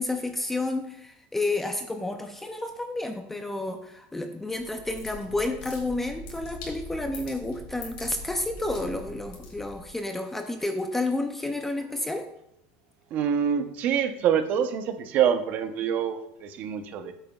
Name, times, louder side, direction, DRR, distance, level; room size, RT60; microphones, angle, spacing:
voice 1, 0.0-12.3, left 2 dB, 5° left, 6 dB, 0.5 m, -30 dB
sound 1, 4.5-9.9, left 2 dB, 65° left, 4.1 m, -42 dB
voice 2, 13.1-17.1, right 8 dB, 35° right, 8 dB, 0.8 m, -26 dB
15.5 x 8.9 x 2.3 m, 0.81 s
cardioid pair, 175°, 5 cm